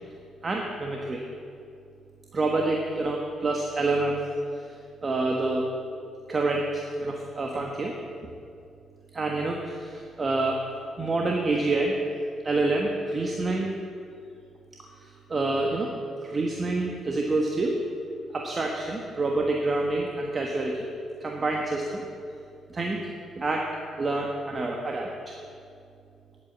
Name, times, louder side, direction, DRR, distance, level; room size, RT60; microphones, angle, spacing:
voice 1, 0.4-1.2 2.3-4.3 4.6-4.7 5.0-5.6 6.3-7.9 9.1-10.6 11.0-12.0 12.4-13.7 15.0-15.9 16.2-17.7 18.3-20.8 21.2-22.0 22.7-23.0 23.4-23.7 24.0-25.3, right 2 dB, 35° right, 0 dB, 1.4 m, -27 dB
10.5 x 8.5 x 8.4 m, 2.5 s
cardioid pair, 90°, 0 cm